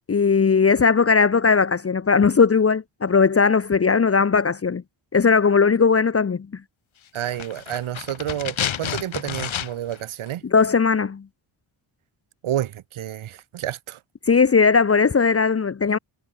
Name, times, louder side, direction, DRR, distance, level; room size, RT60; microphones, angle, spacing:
voice 1, 0.1-4.8 5.1-6.6 10.4-11.2 14.2-16.0, left 5 dB, 30° left, 1.0 m, -18 dB
sound 1, 7.1-10.0 10.3-10.4, left 9 dB, 75° left, 3.6 m, -30 dB
voice 2, 7.1-10.4 12.4-14.0, right 12 dB, 85° right, 1.2 m, -29 dB
wide cardioid pair, 170°, 48 cm